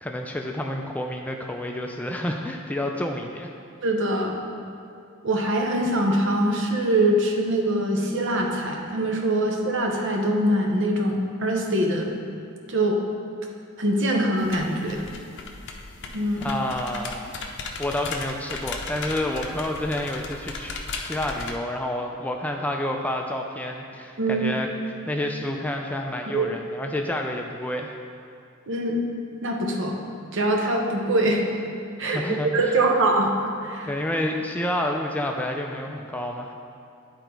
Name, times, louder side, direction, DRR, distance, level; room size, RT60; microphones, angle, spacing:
voice 1, 0.0-3.5 16.4-17.3 17.8-27.9 32.0-32.8 33.8-36.5, left 1 dB, 5° left, 2 dB, 0.3 m, -29 dB
voice 2, 3.8-4.4 5.2-12.1 12.7-13.0 13.8-15.0 16.1-16.6 24.2-24.5 26.3-26.5 28.7-29.0 29.4-30.0 30.3-31.4 32.0-33.9, right 1 dB, 60° right, 1 dB, 0.9 m, -23 dB
sound 1, 14.4-21.6, left 4 dB, 55° left, 0.6 m, -36 dB
10.0 x 3.8 x 4.6 m, 2.7 s
head